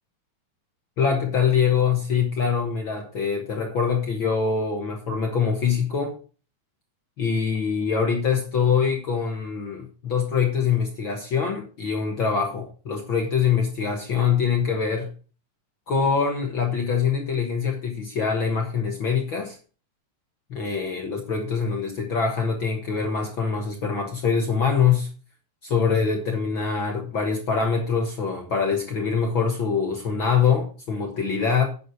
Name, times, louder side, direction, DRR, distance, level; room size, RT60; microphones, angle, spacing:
voice 1, 1.0-6.1 7.2-15.1 15.9-19.6 20.5-25.1 25.6-31.7, left 6 dB, 55° left, 2 dB, 1.5 m, -24 dB
9.8 x 7.4 x 4.6 m, 0.37 s
omnidirectional pair, 3.9 m